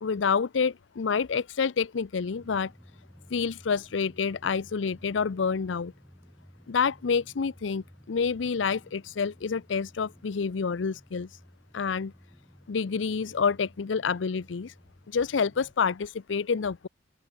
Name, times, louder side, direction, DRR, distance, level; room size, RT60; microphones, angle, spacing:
voice 1, 0.0-2.7 3.3-5.9 6.7-11.4 11.7-12.1 12.7-14.7 15.1-16.9, left 5 dB, 85° left, 0.5 m, -28 dB
Drum, 2.3-15.7, equal, 5° left, 7.3 m, -55 dB
open air
head